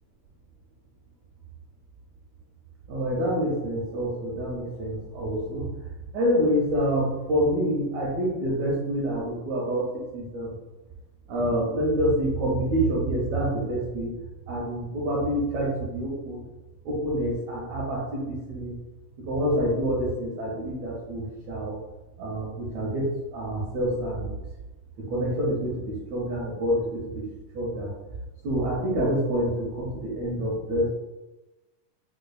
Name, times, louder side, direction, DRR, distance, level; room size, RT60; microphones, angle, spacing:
voice 1, 2.9-5.7 6.1-10.5 11.3-14.1 14.5-16.4 16.8-18.8 19.3-21.8 22.2-24.3 25.1-27.2 27.5-27.9 28.4-30.9, equal, 80° right, -5 dB, 1.6 m, -27 dB
5.1 x 2.3 x 2.3 m, 1.1 s
omnidirectional pair, 3.7 m